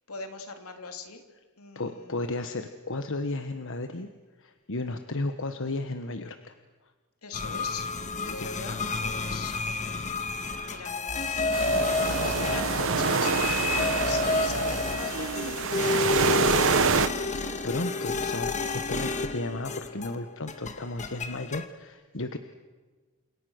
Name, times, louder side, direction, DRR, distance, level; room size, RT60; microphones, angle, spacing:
voice 1, 0.1-1.2 1.6-2.3 7.2-7.9 8.2-10.2 10.6-11.8 12.1-16.5, left 4 dB, 80° left, 5 dB, 3.2 m, -41 dB
voice 2, 1.7-4.1 4.4-6.5 8.3-8.5 17.6-22.4, left 2 dB, 60° left, 8 dB, 1.3 m, -34 dB
sound 1, 7.3-20.2 20.5-21.7, left 3 dB, 35° left, 1.7 m, -30 dB
sound 2, 11.5-17.1, right 5 dB, 60° right, 1.0 m, -27 dB
30.0 x 27.0 x 6.5 m, 1.3 s
head